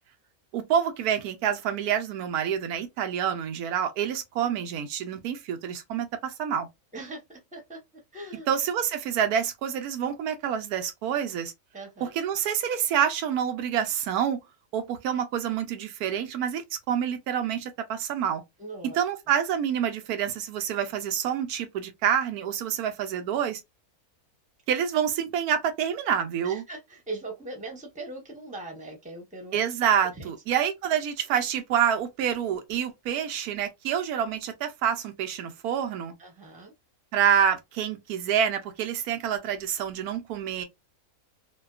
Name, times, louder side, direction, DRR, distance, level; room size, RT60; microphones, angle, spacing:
voice 1, 0.5-6.7 8.5-11.5 12.0-14.4 14.7-18.4 18.8-23.6 24.7-26.6 29.5-36.1 37.1-40.6, right 8 dB, 85° right, 1.1 m, -27 dB
voice 2, 6.9-7.8 8.1-8.5 11.7-12.2 18.6-19.3 26.4-29.6 30.1-30.3 36.2-36.7, right 2 dB, 5° right, 0.7 m, -40 dB
2.7 x 2.2 x 2.3 m
omnidirectional pair, 1.6 m